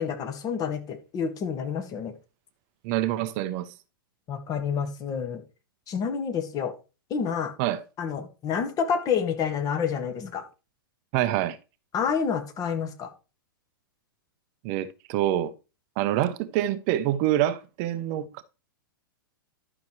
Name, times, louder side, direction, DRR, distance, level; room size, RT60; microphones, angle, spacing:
voice 1, 0.0-2.1 4.3-5.4 5.9-6.7 7.1-7.5 8.0-10.4 11.9-13.1, left 7 dB, 30° left, 1.7 m, -28 dB
voice 2, 2.8-3.7 7.6-7.8 11.1-11.6 14.6-15.5 16.0-18.4, right 13 dB, 45° right, 0.7 m, -26 dB
11.5 x 6.0 x 3.1 m
hypercardioid pair, 110°, 12 cm